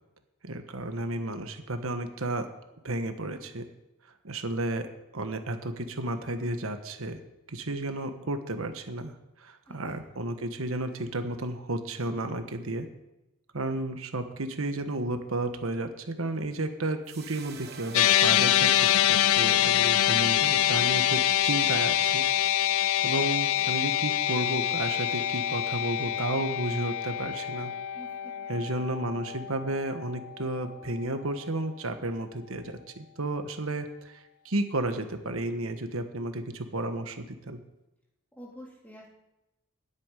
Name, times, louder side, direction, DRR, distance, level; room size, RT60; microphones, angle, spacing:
voice 1, 0.4-2.5 2.8-3.7 4.2-4.9 5.1-7.2 7.5-9.1 9.4-12.9 13.5-22.3 23.0-27.7 28.5-37.6, right 2 dB, 80° right, 7 dB, 1.3 m, -32 dB
voice 2, 9.7-10.2 27.9-29.0 38.3-39.1, equal, 10° left, -3 dB, 3.3 m, -49 dB
sound 1, 17.1-23.4, right 5 dB, 50° right, 1.3 m, -50 dB
sound 2, 17.9-30.4, left 12 dB, 80° left, 0.4 m, -25 dB
9.7 x 8.6 x 9.9 m, 0.96 s
head